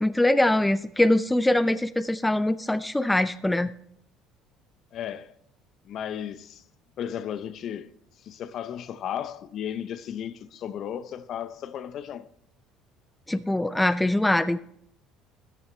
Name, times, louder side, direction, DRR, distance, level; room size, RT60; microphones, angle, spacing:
voice 1, 0.0-3.7 13.3-14.6, left 1 dB, 5° left, 0.4 m, -23 dB
voice 2, 4.9-5.3 5.8-6.6 7.0-7.9 8.2-12.3, left 9 dB, 55° left, 0.6 m, -34 dB
13.5 x 10.5 x 3.2 m
cardioid pair, 110°, 0 cm